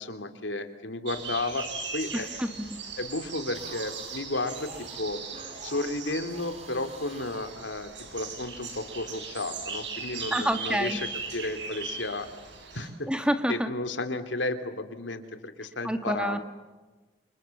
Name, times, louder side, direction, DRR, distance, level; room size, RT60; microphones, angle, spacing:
voice 1, 0.0-1.7 1.9-2.4 3.0-5.2 5.6-12.3 12.7-13.1 13.5-16.4, left 2 dB, 85° left, 8 dB, 2.9 m, -33 dB
sound 1, 1.1-12.9, right 5 dB, 80° right, 6.9 m, -39 dB
voice 2, 2.1-2.6 10.3-11.0 13.1-13.7 15.8-16.4, equal, 5° right, 7 dB, 1.9 m, -28 dB
sound 2, 3.5-8.1, right 3 dB, 35° right, 3.9 m, -48 dB
30.0 x 28.0 x 7.2 m, 1.2 s
head